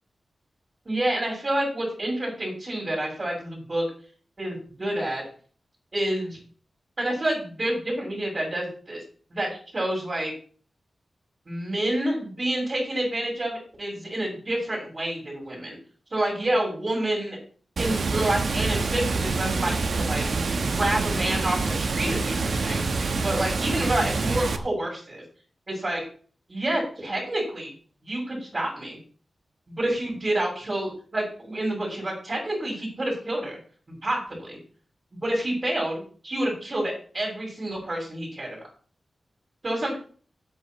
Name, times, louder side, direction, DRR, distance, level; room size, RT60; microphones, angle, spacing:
voice 1, 0.8-3.8 4.4-5.2 5.9-6.4 7.0-9.0 9.3-10.3 11.5-15.8 16.1-17.4 17.8-20.3 20.7-22.8 23.2-25.2 25.7-26.0 26.5-27.7 28.0-29.0 29.7-33.6 34.0-34.6 35.2-38.6 39.6-40.0, right 1 dB, 40° right, -8 dB, 6.1 m, -28 dB
Water, 17.8-24.6, right 3 dB, 70° right, 1.1 m, -26 dB
18.0 x 8.5 x 3.1 m, 0.44 s
wide cardioid pair, 85°, 0 cm